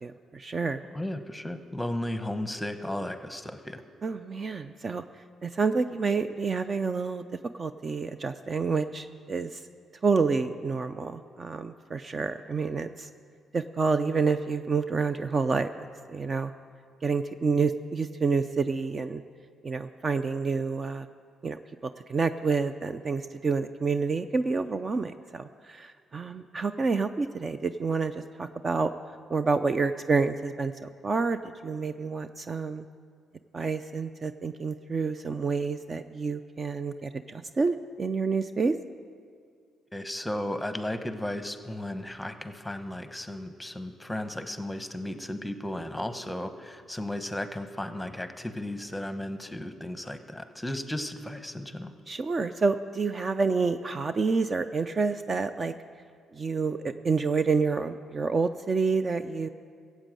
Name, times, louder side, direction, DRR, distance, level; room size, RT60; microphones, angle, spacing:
voice 1, 0.0-0.8 4.0-5.0 5.4-7.2 7.5-9.6 10.0-13.1 13.5-16.5 17.0-19.2 19.6-21.1 21.4-28.9 29.3-32.8 33.5-38.7 52.1-55.7 56.3-59.5, right 4 dB, 35° right, 10 dB, 0.4 m, -28 dB
voice 2, 0.9-3.8 39.9-51.9, left 1 dB, 5° left, 9 dB, 0.9 m, -35 dB
15.0 x 8.2 x 7.6 m, 2.1 s
cardioid pair, 90°, 0 cm